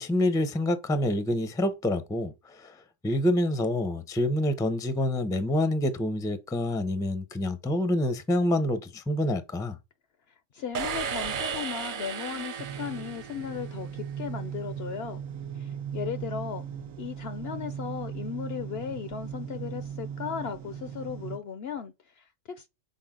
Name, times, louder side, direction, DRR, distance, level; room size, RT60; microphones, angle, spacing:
voice 1, 0.0-2.3 2.6-2.7 3.0-9.8, left 1 dB, 5° left, 0.4 m, -27 dB
voice 2, 10.5-15.2 15.6-16.6 17.0-22.7, left 7 dB, 65° left, 0.7 m, -36 dB
sound 1, 10.7-13.9, right 7 dB, 55° right, 0.6 m, -34 dB
sound 2, 12.6-21.4, right 8 dB, 90° right, 1.2 m, -38 dB
6.1 x 4.3 x 3.7 m
omnidirectional pair, 1.4 m